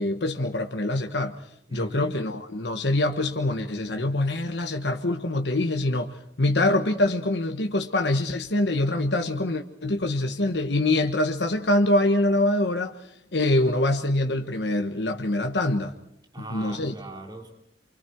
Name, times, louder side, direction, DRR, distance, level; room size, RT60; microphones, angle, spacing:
voice 1, 0.0-1.4 1.7-13.0 13.3-15.9 16.5-16.9, left 1 dB, 75° left, 1.4 m, -24 dB
voice 2, 1.7-2.1 16.3-17.5, right 1 dB, 25° right, 3.7 m, -38 dB
28.5 x 25.5 x 4.6 m
head